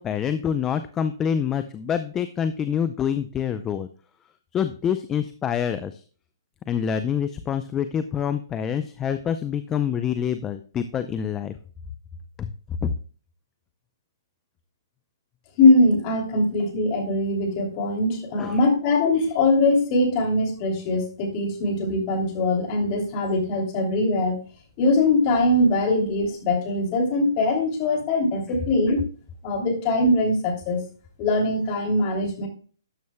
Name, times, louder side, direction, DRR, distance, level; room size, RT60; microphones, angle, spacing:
voice 1, 0.0-3.9 4.5-6.0 6.7-11.6 12.4-12.5 12.8-12.9 18.4-18.6 28.5-28.6, left 8 dB, 15° left, 11 dB, 0.5 m, -26 dB
voice 2, 15.6-24.4 24.8-29.1 29.4-30.8 31.2-32.5, left 2 dB, 35° left, 2 dB, 2.8 m, -22 dB
12.5 x 9.2 x 2.2 m, 0.41 s
hypercardioid pair, 150°, 2 cm